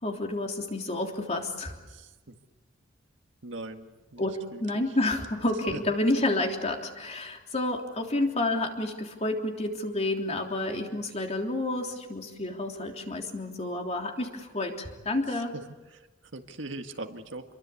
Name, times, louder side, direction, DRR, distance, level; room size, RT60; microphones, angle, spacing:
voice 1, 0.0-1.8 4.2-15.5, left 2 dB, 35° left, 2 dB, 3.4 m, -30 dB
voice 2, 1.9-2.4 3.4-4.2 4.5-4.8 5.7-5.8 15.9-16.1 16.3-17.4, right 2 dB, 75° right, 5 dB, 1.9 m, -40 dB
27.5 x 23.0 x 8.5 m, 1.2 s
head